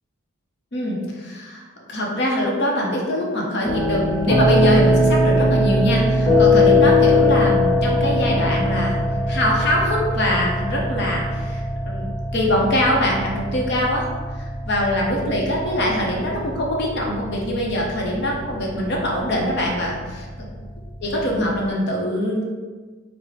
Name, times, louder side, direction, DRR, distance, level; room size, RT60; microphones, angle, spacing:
voice 1, 0.7-9.0 9.3-14.1 14.4-20.2 21.0-22.4, equal, 55° left, -2 dB, 0.7 m, -23 dB
sound 1, 3.6-21.6, left 1 dB, 15° left, 1.2 m, -21 dB
4.7 x 2.1 x 3.2 m, 1.4 s
head